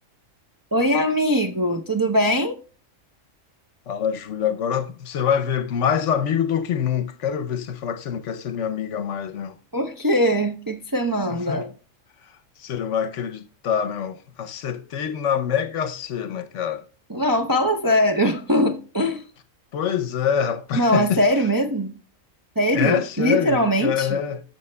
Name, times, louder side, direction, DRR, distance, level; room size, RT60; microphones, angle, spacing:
voice 1, 0.7-2.5 9.7-11.7 17.1-19.2 20.7-21.9 22.6-24.2, equal, 25° right, 0.5 m, -21 dB
voice 2, 3.9-9.6 11.3-11.6 12.6-16.8 19.7-21.2 22.7-24.4, left 8 dB, 70° left, 1.0 m, -25 dB
12.5 x 6.1 x 2.2 m
omnidirectional pair, 1.4 m